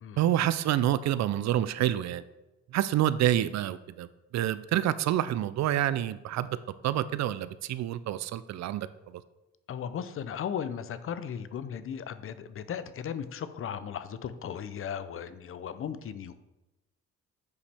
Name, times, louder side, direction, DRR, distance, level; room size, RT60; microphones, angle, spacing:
voice 1, 0.2-2.2 2.7-4.1 4.3-6.6 6.8-8.9, right 12 dB, 65° right, 15 dB, 0.4 m, -27 dB
voice 2, 9.7-16.4, left 8 dB, 45° left, 13 dB, 0.5 m, -36 dB
8.1 x 5.0 x 3.4 m, 1.0 s
cardioid pair, 90°, 30 cm